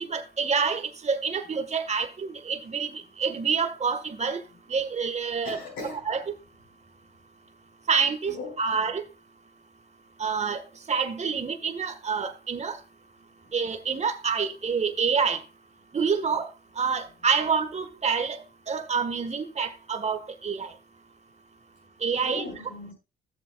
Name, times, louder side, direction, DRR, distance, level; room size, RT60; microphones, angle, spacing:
voice 1, 0.0-2.9 3.2-4.4 4.7-5.6 6.1-6.2 7.9-9.0 10.2-10.6 10.9-12.8 13.5-15.4 15.9-16.5 16.8-18.4 18.7-20.7 22.0-22.4, right 5 dB, 35° right, 1.5 m, -27 dB
voice 2, 5.4-6.0 8.3-8.8 22.2-22.9, left 3 dB, 85° left, 5.4 m, -38 dB
14.0 x 7.4 x 2.3 m
cardioid pair, 90°, 20 cm